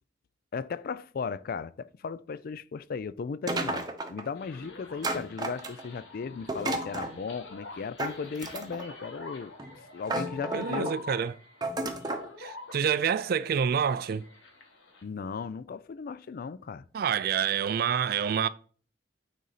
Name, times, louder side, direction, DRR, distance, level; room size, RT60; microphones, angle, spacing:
voice 1, 0.5-9.5 9.9-10.9 15.0-16.8, left 5 dB, 50° left, 0.3 m, -36 dB
sound 1, 3.5-4.3 5.0-6.0 6.5-7.1 8.0-8.9 9.6-9.7 10.0-10.9 11.6-12.3, right 2 dB, 20° right, 0.8 m, -32 dB
sound 2, 4.4-15.0, left 3 dB, 80° left, 1.5 m, -47 dB
voice 2, 10.5-11.3 12.4-14.3 16.9-18.5, right 7 dB, 55° right, 0.3 m, -27 dB
9.3 x 4.0 x 4.1 m
head